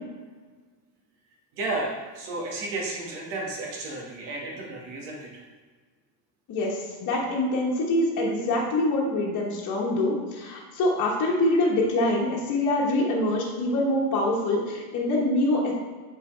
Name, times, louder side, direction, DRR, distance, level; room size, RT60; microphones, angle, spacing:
voice 1, 1.6-5.4, right 2 dB, 70° right, -2 dB, 1.9 m, -33 dB
voice 2, 6.5-15.7, left 1 dB, 40° left, -4 dB, 1.2 m, -25 dB
7.4 x 4.6 x 3.3 m, 1.4 s
cardioid pair, 140°, 46 cm